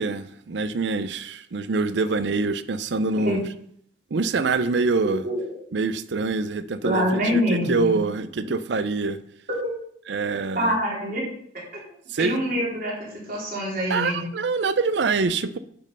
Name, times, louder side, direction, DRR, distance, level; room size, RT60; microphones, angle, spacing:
voice 1, 0.0-3.4 4.1-5.3 5.7-9.2 10.1-10.7 12.1-12.6 13.9-15.6, right 4 dB, 70° right, 13 dB, 0.5 m, -25 dB
voice 2, 6.8-8.0 9.6-9.7 10.6-11.2 11.5-11.6 12.2-14.3, equal, 50° right, -4 dB, 3.7 m, -25 dB
10.5 x 5.3 x 5.5 m, 0.68 s
head